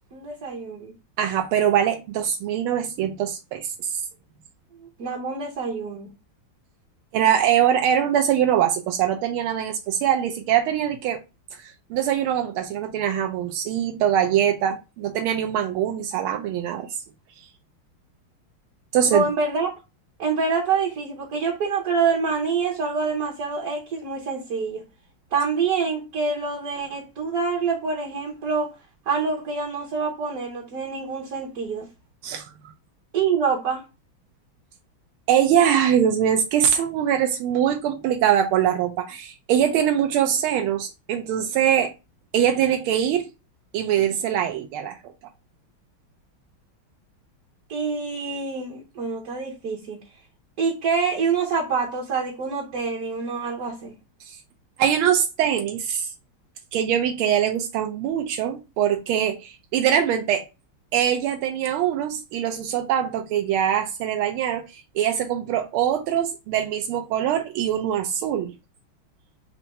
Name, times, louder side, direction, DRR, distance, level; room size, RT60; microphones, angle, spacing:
voice 1, 0.1-0.9 5.0-6.1 19.1-19.7 20.2-24.8 25.3-28.7 29.1-31.9 33.1-33.8 47.7-50.0 50.6-53.9, right 5 dB, 55° right, 1.2 m, -26 dB
voice 2, 1.2-4.0 7.1-11.2 11.6-16.9 18.9-19.2 32.2-32.5 35.3-41.9 42.3-43.3 43.7-45.0 54.2-54.4 54.8-56.1 56.7-60.5 60.9-68.5, right 9 dB, 85° right, 1.5 m, -23 dB
4.3 x 2.7 x 4.1 m
omnidirectional pair, 2.3 m